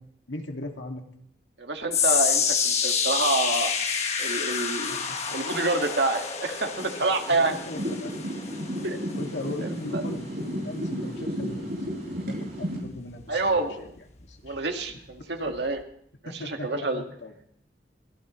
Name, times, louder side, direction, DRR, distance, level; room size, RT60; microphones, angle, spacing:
voice 1, 0.3-1.0 4.9-5.4 6.9-7.0 7.5-8.1 9.1-11.9 12.2-13.9 14.2-14.6 14.9-15.0 15.5-15.6 16.3-17.4, left 1 dB, 90° left, 3 dB, 2.2 m, -38 dB
voice 2, 1.6-3.7 4.2-5.0 5.3-7.6 8.8-9.0 9.9-10.0 13.3-13.7 14.4-15.8 16.4-17.0, right 2 dB, 75° right, 4 dB, 1.9 m, -27 dB
sound 1, 1.9-14.2 14.5-14.9 15.5-15.6, left 6 dB, 35° left, 1.5 m, -29 dB
sound 2, 7.8-12.8, equal, 50° right, 6.3 m, -33 dB
23.5 x 17.5 x 3.2 m, 0.66 s
head